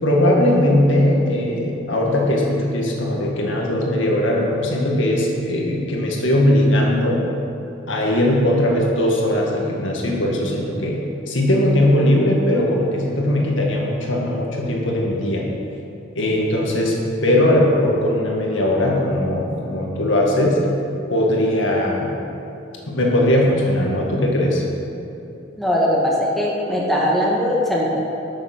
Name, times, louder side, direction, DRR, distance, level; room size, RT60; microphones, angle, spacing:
voice 1, 0.0-7.2 7.9-11.0 11.3-15.4 16.2-16.9 17.2-20.6 21.1-22.1 22.9-24.6, left 1 dB, 80° left, -1 dB, 2.0 m, -19 dB
voice 2, 25.6-28.0, equal, ahead, -4 dB, 1.7 m, -20 dB
12.0 x 7.1 x 6.1 m, 2.8 s
head